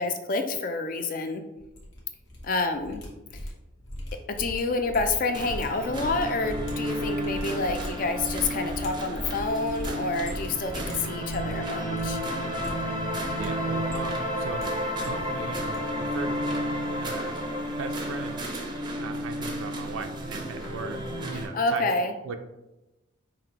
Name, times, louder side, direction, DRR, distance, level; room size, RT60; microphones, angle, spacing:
voice 1, 0.0-1.4 2.4-3.0 4.3-12.2 21.5-22.1, left 3 dB, 40° left, 7 dB, 0.4 m, -28 dB
sound 1, 1.6-2.5 2.7-11.7 11.9-12.2 12.5-13.5 13.8-14.6 14.9-15.8 16.0-16.4 16.6-16.8, equal, 70° left, 1.1 m, -39 dB
sound 2, 5.3-21.5, equal, 20° right, 0.5 m, -31 dB
voice 2, 13.4-16.4 16.7-17.5 17.8-18.5 19.0-21.9 22.2-22.4, right 4 dB, 80° right, 7 dB, 0.4 m, -38 dB
5.1 x 2.9 x 2.9 m, 0.99 s
head